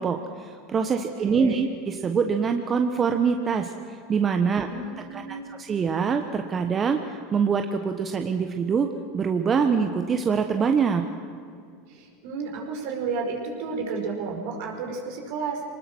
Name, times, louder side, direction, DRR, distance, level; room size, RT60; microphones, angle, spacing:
voice 1, 0.0-4.7 5.1-5.2 5.5-11.1, right 6 dB, 30° right, 6 dB, 1.2 m, -24 dB
voice 2, 0.9-1.6 4.5-5.4 11.9-15.6, right 4 dB, 65° right, 1 dB, 4.9 m, -32 dB
25.5 x 19.5 x 6.2 m, 2.3 s
hypercardioid pair, 90°, 0 cm